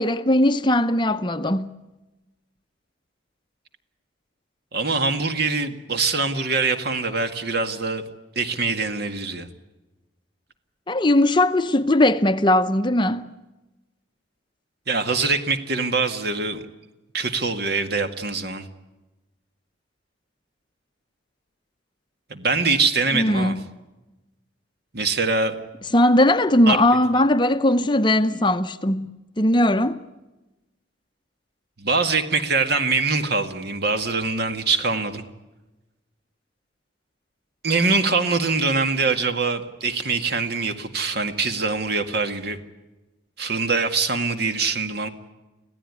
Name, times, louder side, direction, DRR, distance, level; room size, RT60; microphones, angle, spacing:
voice 1, 0.0-1.7 10.9-13.3 23.1-23.6 25.9-29.1 29.4-30.0, left 1 dB, 25° left, 0.8 m, -19 dB
voice 2, 4.7-8.0 8.4-9.5 14.9-16.6 17.1-18.7 22.3-23.5 24.9-25.5 26.7-26.8 31.8-35.2 37.6-42.6 43.4-45.1, right 4 dB, 55° right, 2.1 m, -23 dB
26.0 x 16.5 x 9.8 m
head